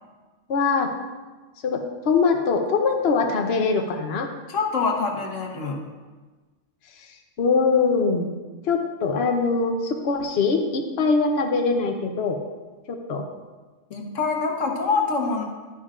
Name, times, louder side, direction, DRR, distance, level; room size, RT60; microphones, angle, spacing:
voice 1, 0.5-0.9 1.6-4.3 6.9-8.4 8.6-12.4 12.9-13.2, left 4 dB, 60° left, 3 dB, 1.0 m, -23 dB
voice 2, 4.5-5.8 13.9-15.4, left 4 dB, 80° left, 1 dB, 1.6 m, -25 dB
12.0 x 9.9 x 2.5 m, 1.3 s
omnidirectional pair, 1.3 m